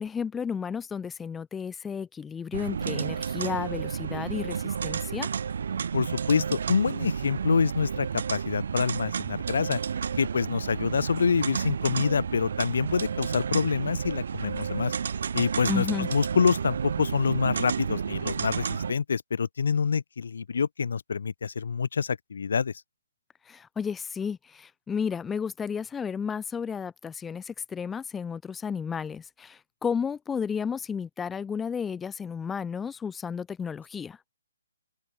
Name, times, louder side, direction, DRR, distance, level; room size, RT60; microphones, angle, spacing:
voice 1, 0.0-5.3 15.7-16.1 23.5-34.2, left 6 dB, 10° left, 0.4 m, -32 dB
slot machine casino, 2.5-18.9, right 6 dB, 60° right, 0.9 m, -31 dB
voice 2, 5.9-9.8 10.2-14.9 15.3-22.7, left 6 dB, 65° left, 0.7 m, -26 dB
open air
hypercardioid pair, 155°, 0 cm